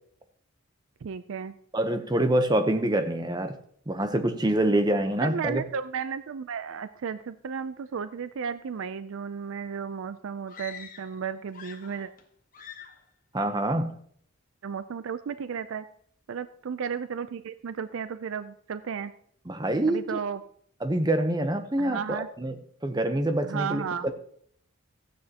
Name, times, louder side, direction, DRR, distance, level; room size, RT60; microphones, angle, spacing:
voice 1, 1.0-1.5 5.2-12.1 14.6-15.8 16.3-19.1 19.9-20.4 21.8-22.3 23.4-24.1, right 6 dB, 60° right, 12 dB, 0.4 m, -34 dB
voice 2, 1.7-3.6 3.9-5.6 13.3-14.0 19.5-20.2 20.8-22.6 22.8-24.1, right 1 dB, 20° right, 8 dB, 0.8 m, -26 dB
sound 1, 10.5-11.2 11.5-12.2 12.5-13.1, left 7 dB, 40° left, 1.2 m, -45 dB
14.5 x 9.6 x 2.9 m, 0.63 s
head